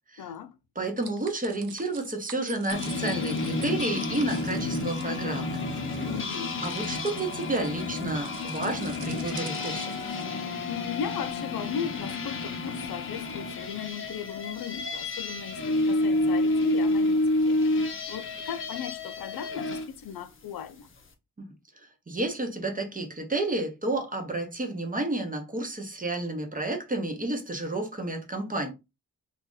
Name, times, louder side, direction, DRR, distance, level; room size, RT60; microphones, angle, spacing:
voice 1, 0.2-0.6 6.0-6.6 10.7-17.6 18.1-20.9, left 8 dB, 80° left, 0.5 m, -37 dB
voice 2, 0.8-5.6 6.6-9.9 21.4-21.5 21.8-28.7, right 2 dB, 25° right, 0.8 m, -31 dB
sound 1, 1.0-10.2, right 8 dB, 80° right, 0.6 m, -47 dB
sound 2, 2.7-19.9, left 2 dB, 35° left, 0.7 m, -29 dB
2.7 x 2.5 x 3.6 m
wide cardioid pair, 130°, 35 cm